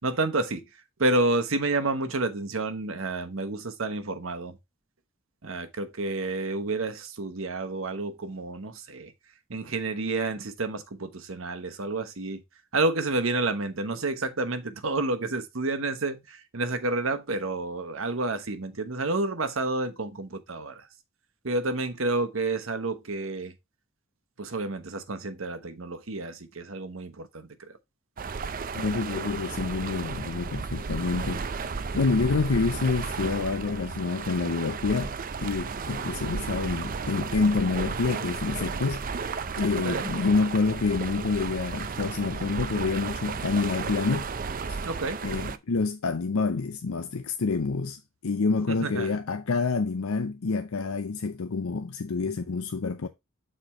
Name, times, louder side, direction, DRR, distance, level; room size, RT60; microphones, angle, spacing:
voice 1, 0.0-4.6 5.4-9.1 9.5-12.4 12.7-20.9 21.4-23.5 24.4-27.8 39.8-40.1 44.8-45.3 48.7-49.2, right 2 dB, 70° right, 1.1 m, -30 dB
sound 1, 28.2-45.6, right 5 dB, 40° right, 0.5 m, -34 dB
voice 2, 28.7-31.4 31.9-35.1 35.4-39.1 39.6-44.3 44.7-44.9 45.2-53.1, left 4 dB, 85° left, 0.6 m, -27 dB
6.8 x 4.4 x 4.3 m
head